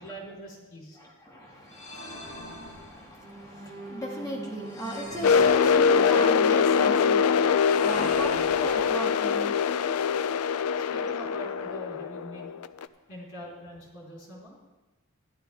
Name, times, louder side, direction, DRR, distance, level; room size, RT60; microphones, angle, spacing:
voice 1, 0.0-1.0 10.8-12.5 13.1-14.6, equal, 60° left, -4 dB, 4.1 m, -43 dB
voice 2, 1.0-7.5 7.8-9.6 10.0-10.1, right 1 dB, 15° left, -2 dB, 2.0 m, -37 dB
sound 1, 1.7-3.4 4.7-6.3 7.6-9.4, left 1 dB, 30° left, 1.6 m, -43 dB
sound 2, 3.2-9.1 9.6-9.8 10.2-10.4, right 1 dB, 50° right, 1.1 m, -45 dB
sound 3, 5.2-12.9, left 6 dB, 85° left, 0.4 m, -23 dB
13.0 x 11.0 x 3.4 m, 1.1 s
head